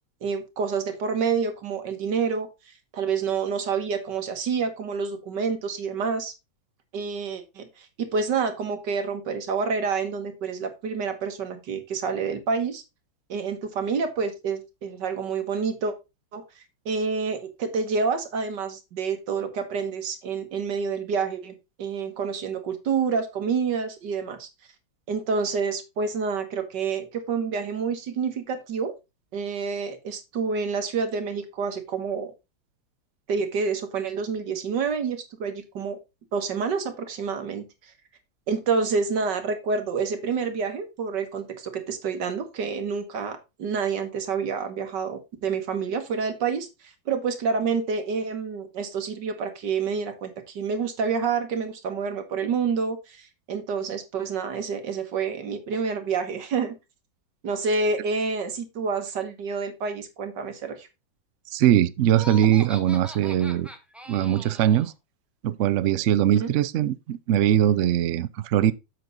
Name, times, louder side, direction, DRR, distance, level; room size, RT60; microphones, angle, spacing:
voice 1, 0.2-2.5 2.9-6.3 6.9-12.8 13.3-15.9 16.3-16.4 16.9-24.5 25.1-28.9 29.3-32.3 33.3-36.0 36.3-37.7 38.5-46.7 47.1-56.8 57.4-60.9 66.4-66.5, right 5 dB, 70° right, 1.9 m, -28 dB
voice 2, 61.5-63.7 64.1-64.9 65.4-68.7, right 11 dB, 90° right, 0.6 m, -21 dB
Laughter, 62.1-64.9, left 1 dB, ahead, 0.8 m, -41 dB
7.6 x 6.1 x 4.0 m
omnidirectional pair, 2.0 m